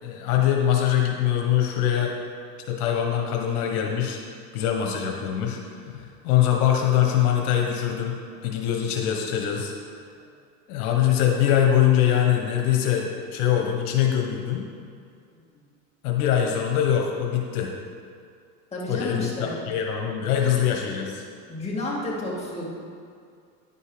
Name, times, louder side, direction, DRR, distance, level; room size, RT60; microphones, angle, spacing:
voice 1, 0.0-2.1 2.7-4.2 4.5-5.6 5.9-9.7 10.7-14.7 16.0-17.7 18.9-21.2, left 10 dB, 80° left, 1 dB, 1.2 m, -23 dB
voice 2, 18.7-19.6 21.5-22.7, left 2 dB, 15° left, -6 dB, 2.3 m, -31 dB
10.0 x 5.5 x 5.0 m, 2.3 s
supercardioid pair, 110°, 44 cm